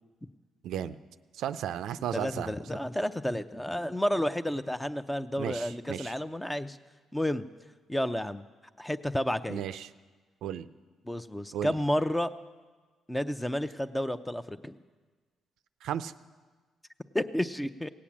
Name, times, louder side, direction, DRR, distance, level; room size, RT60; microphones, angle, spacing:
voice 1, 0.6-1.0 1.4-2.5 5.4-6.1 9.5-9.9 10.4-10.7 11.5-11.8 15.8-16.1, right 10 dB, 80° right, 12 dB, 0.4 m, -34 dB
voice 2, 2.1-6.8 7.1-7.5 7.9-8.4 8.8-9.6 11.0-12.3 13.1-14.8 17.1-17.9, equal, 10° left, 12 dB, 0.6 m, -31 dB
17.5 x 8.5 x 7.4 m, 1.4 s
cardioid pair, 90°, 0 cm